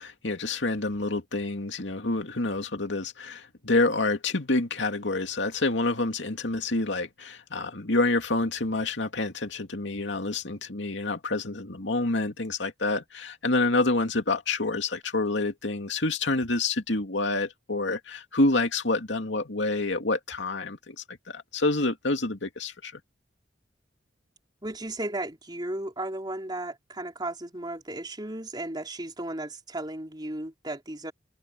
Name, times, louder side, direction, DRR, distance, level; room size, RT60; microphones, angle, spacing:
voice 1, 0.0-22.9, left 2 dB, 75° left, 2.5 m, -28 dB
voice 2, 24.6-31.1, right 1 dB, 25° right, 4.1 m, -35 dB
head